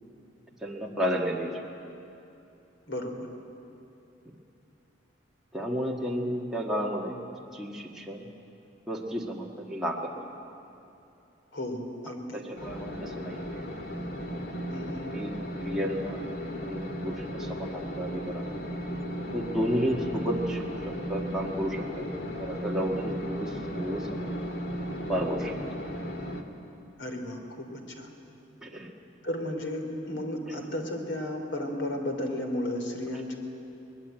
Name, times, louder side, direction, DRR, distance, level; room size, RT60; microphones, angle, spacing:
voice 1, 0.6-1.6 5.5-7.2 7.5-8.3 8.9-10.3 12.3-13.6 15.1-15.3 15.6-16.2 16.6-18.5 19.3-24.3 25.1-25.6 28.6-28.9, equal, 5° right, -3 dB, 1.7 m, -32 dB
voice 2, 11.5-12.4 14.7-15.1 27.0-27.7 28.0-28.1 29.2-33.4, left 1 dB, 75° left, 4 dB, 3.4 m, -33 dB
sound 1, 12.6-26.4, equal, 55° left, 1.9 m, -35 dB
23.0 x 21.0 x 9.0 m, 2.8 s
head